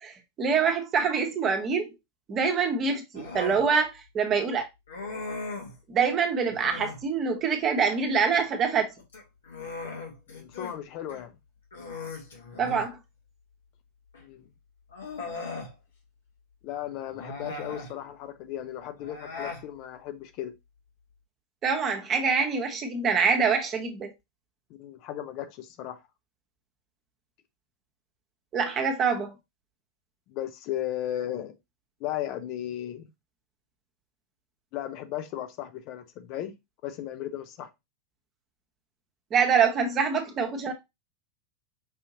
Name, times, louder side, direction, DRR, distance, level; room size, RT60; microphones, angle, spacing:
voice 1, 0.0-1.9 2.3-4.7 5.9-8.9 12.6-13.0 21.6-24.1 28.5-29.3 39.3-40.7, right 6 dB, 30° right, 1.0 m, -25 dB
Human voice, 3.1-3.7 4.9-5.8 6.5-7.0 9.0-10.8 11.1-11.2 11.7-12.9 14.1-14.2 14.9-15.7 17.1-17.9 19.0-19.7, left 3 dB, 65° left, 1.3 m, -38 dB
voice 2, 10.3-11.3 14.2-14.5 16.6-20.5 24.8-26.0 30.3-31.5 32.0-33.1 34.7-36.5 36.8-37.7, left 12 dB, 40° left, 0.6 m, -35 dB
5.5 x 2.8 x 2.8 m
figure-of-eight pair, 90°, 0 cm